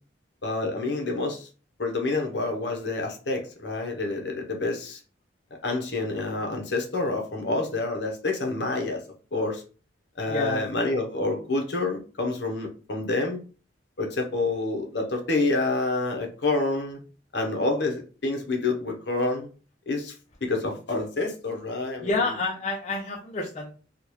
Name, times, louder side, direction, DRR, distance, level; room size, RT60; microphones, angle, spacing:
voice 1, 0.4-1.5 1.8-5.0 5.6-9.0 9.3-9.6 10.2-13.4 14.0-17.0 17.3-19.5 19.9-20.1 20.4-22.1, left 2 dB, 65° left, 3 dB, 0.8 m, -28 dB
voice 2, 10.3-10.6 22.0-23.7, left 3 dB, 35° left, -1 dB, 0.5 m, -28 dB
3.5 x 2.3 x 3.0 m, 0.36 s
head